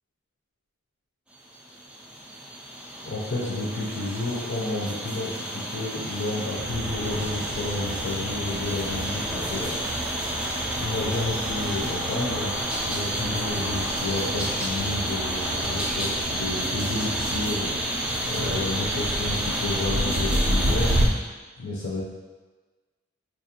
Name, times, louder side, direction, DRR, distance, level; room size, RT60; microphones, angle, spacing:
sound 1, 1.4-21.1, equal, 5° right, 0.3 m, -30 dB
voice 1, 3.0-9.8 10.8-21.2 21.6-22.0, left 2 dB, 65° left, -5 dB, 0.5 m, -31 dB
sound 2, 6.6-21.1, right 1 dB, 55° right, 0.5 m, -32 dB
4.2 x 2.4 x 2.8 m, 1.3 s
head